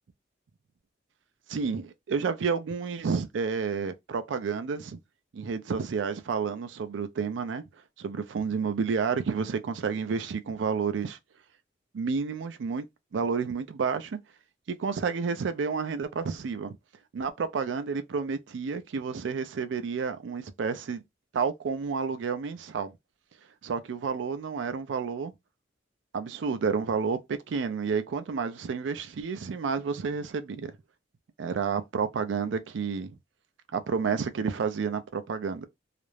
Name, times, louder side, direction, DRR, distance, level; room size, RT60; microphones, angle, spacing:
voice 1, 1.5-5.0 5.3-7.7 8.0-11.2 11.9-12.9 13.1-14.2 14.7-16.8 17.1-21.0 21.3-22.9 23.6-25.3 26.1-30.7 31.4-33.2 33.7-35.7, right 5 dB, 75° right, 0.4 m, -30 dB
2.4 x 2.0 x 3.1 m
head